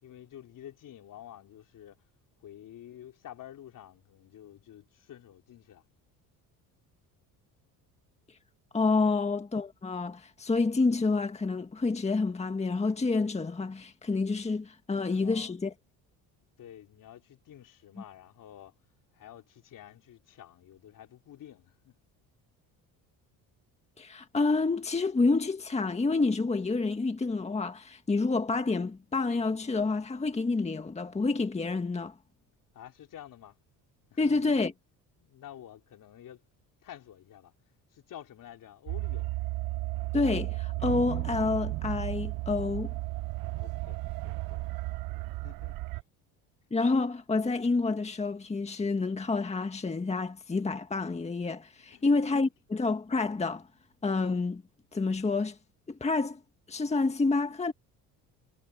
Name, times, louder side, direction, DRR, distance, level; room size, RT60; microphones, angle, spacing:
voice 1, 0.0-2.0 2.4-5.8 15.1-15.8 16.6-18.7 19.1-21.9 32.7-33.6 34.1-34.7 35.2-36.4 36.8-37.5 37.9-39.3 43.5-45.1 45.4-45.9 51.8-52.2, left 11 dB, 55° left, 3.7 m, -50 dB
voice 2, 8.7-15.7 24.0-32.1 34.2-34.7 40.1-42.9 46.7-53.7 54.0-54.6 54.9-55.6 55.9-56.4 56.7-57.7, left 3 dB, 15° left, 1.7 m, -28 dB
sound 1, 38.9-46.0, right 19 dB, 65° right, 0.7 m, -34 dB
cardioid pair, 105°, 37 cm